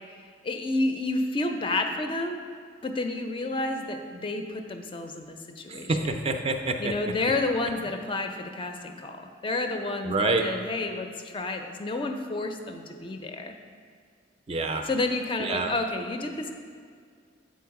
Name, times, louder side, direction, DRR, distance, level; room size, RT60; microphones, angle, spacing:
voice 1, 0.4-2.4 2.8-6.0 6.8-13.5 14.9-16.5, left 2 dB, 30° left, 5 dB, 0.4 m, -30 dB
voice 2, 5.7-6.9 10.0-10.5 14.5-14.9 15.4-15.7, right 3 dB, 35° right, 5 dB, 0.4 m, -27 dB
7.0 x 4.3 x 4.7 m, 2.1 s
head